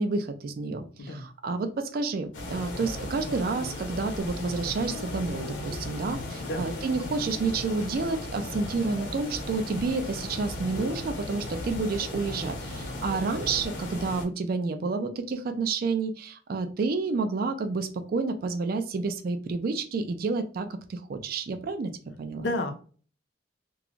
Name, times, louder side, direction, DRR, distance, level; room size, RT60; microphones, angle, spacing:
voice 1, 0.0-21.9 22.2-22.5, right 4 dB, 50° right, 7 dB, 0.3 m, -30 dB
sound 1, 2.3-14.2, left 2 dB, 90° left, 0.9 m, -36 dB
voice 2, 22.4-22.7, left 1 dB, 65° left, 6 dB, 0.5 m, -30 dB
2.4 x 2.3 x 2.9 m, 0.39 s
head